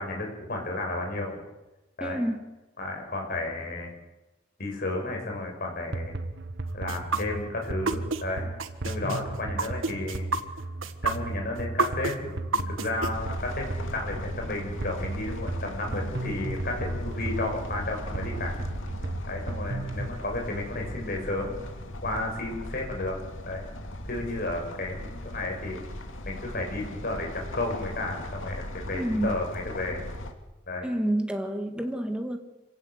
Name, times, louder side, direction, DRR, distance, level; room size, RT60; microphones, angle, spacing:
voice 1, 0.0-1.4 2.0-2.2 2.8-3.9 4.6-6.1 6.7-8.5 8.8-10.3 11.0-18.7 19.3-21.6 22.0-23.2 23.4-23.7 24.0-25.8 26.2-30.0 30.7-30.9, left 2 dB, 50° left, 2 dB, 6.7 m, -32 dB
voice 2, 2.0-2.4 28.9-29.4 30.8-32.4, right 1 dB, 5° right, 5 dB, 2.1 m, -28 dB
sound 1, 5.9-20.2, right 2 dB, 60° right, 1.3 m, -35 dB
sound 2, 6.9-8.2 8.6-13.1, right 4 dB, 85° right, 1.5 m, -28 dB
sound 3, 13.1-30.3, left 1 dB, 75° left, 2.6 m, -38 dB
26.0 x 17.5 x 8.4 m, 1.0 s
head